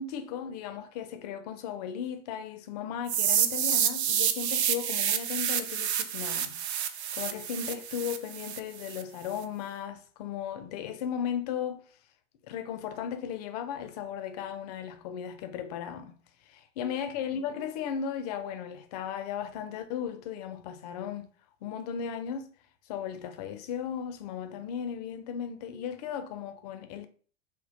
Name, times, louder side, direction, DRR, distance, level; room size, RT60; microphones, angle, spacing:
voice 1, 0.0-11.8 12.4-16.2 16.5-21.3 21.6-22.5 22.9-27.1, left 8 dB, 35° left, 0.4 m, -36 dB
sound 1, 3.1-9.0, right 9 dB, 60° right, 0.6 m, -29 dB
3.6 x 2.0 x 3.9 m
figure-of-eight pair, 95°, 38 cm